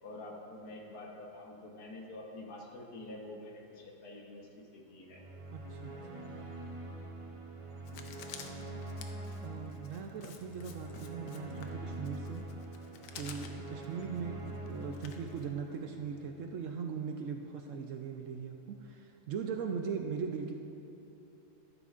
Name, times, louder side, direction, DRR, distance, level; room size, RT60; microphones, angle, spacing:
voice 1, 0.0-5.2 7.9-8.0 14.1-14.4, left 2 dB, 65° left, -1 dB, 1.6 m, -47 dB
sound 1, 5.1-16.4, right 2 dB, 35° right, 0.5 m, -44 dB
voice 2, 5.5-6.0 9.4-12.4 13.2-14.3 14.7-20.5, right 6 dB, 75° right, 4 dB, 0.7 m, -39 dB
Writing, 7.9-15.8, left 6 dB, 80° left, 1.3 m, -51 dB
13.0 x 12.0 x 2.5 m, 2.8 s
omnidirectional pair, 1.8 m